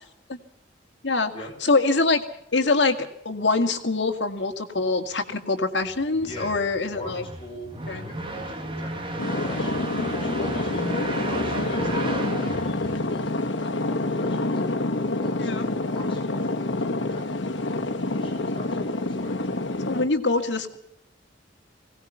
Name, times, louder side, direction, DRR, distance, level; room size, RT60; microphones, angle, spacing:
voice 1, 1.6-2.2 2.5-7.2 7.9-8.0 15.4-15.7 19.8-20.8, left 3 dB, 70° left, 6 dB, 2.2 m, -24 dB
sound 1, 5.9-13.5, right 1 dB, 30° right, 2.6 m, -34 dB
voice 2, 6.1-7.7 8.0-14.6 15.2-15.5 15.8-19.4, left 1 dB, 30° left, 0 dB, 6.8 m, -43 dB
sound 2, 9.2-20.1, left 2 dB, 85° left, 1.5 m, -27 dB
21.0 x 18.5 x 7.0 m, 0.77 s
head